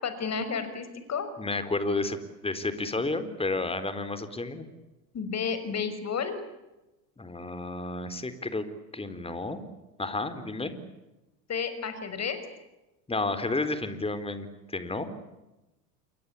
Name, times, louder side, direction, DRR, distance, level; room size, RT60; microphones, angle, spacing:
voice 1, 0.0-1.3 5.1-6.4 11.5-12.4, left 6 dB, 35° left, 10 dB, 6.1 m, -31 dB
voice 2, 1.4-4.7 7.2-8.7 8.9-9.6 10.0-10.7 13.1-15.1, left 2 dB, 10° left, 11 dB, 4.1 m, -31 dB
28.5 x 23.5 x 8.5 m, 1.0 s
hypercardioid pair, 90°, 47 cm